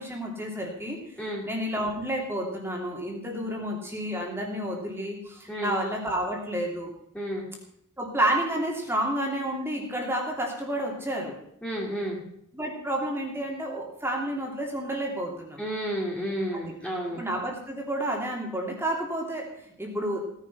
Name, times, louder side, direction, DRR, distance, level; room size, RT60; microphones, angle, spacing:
voice 1, 0.0-1.0 1.4-6.9 8.0-11.3 12.5-15.6 16.5-16.7 17.2-19.5 19.8-20.2, right 1 dB, 10° right, 0 dB, 2.8 m, -30 dB
voice 2, 7.1-7.5 11.6-12.2 15.6-17.2, equal, 5° left, -3 dB, 2.5 m, -31 dB
17.0 x 10.5 x 5.8 m, 0.73 s
head